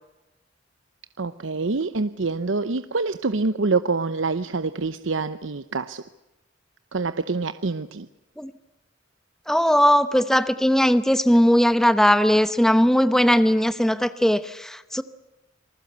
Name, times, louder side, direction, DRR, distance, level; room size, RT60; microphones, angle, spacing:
voice 1, 1.2-6.0 6.9-8.1, right 3 dB, 70° right, 0.8 m, -26 dB
voice 2, 9.5-15.0, equal, ahead, 0.9 m, -19 dB
27.5 x 20.0 x 8.1 m
head